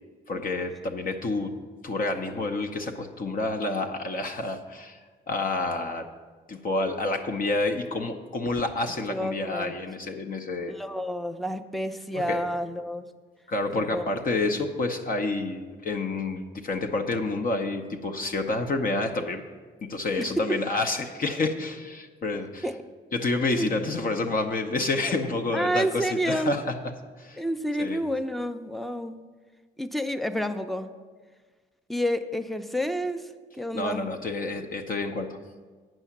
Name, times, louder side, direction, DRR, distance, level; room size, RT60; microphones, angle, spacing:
voice 1, 0.3-1.6 1.8-5.0 5.3-6.1 6.5-10.7 12.1-12.4 13.5-19.4 19.8-22.7 23.1-26.8 27.2-27.4 27.8-28.0 33.7-35.4, left 2 dB, 45° left, 4 dB, 0.8 m, -29 dB
voice 2, 9.1-9.8 10.7-13.1 13.7-14.0 20.2-20.6 22.3-22.8 23.5-23.7 25.5-26.5 27.4-29.2 29.8-30.9 31.9-33.3 33.5-34.1, equal, ahead, 9 dB, 0.5 m, -29 dB
9.1 x 5.6 x 7.2 m, 1.5 s
cardioid pair, 90°, 20 cm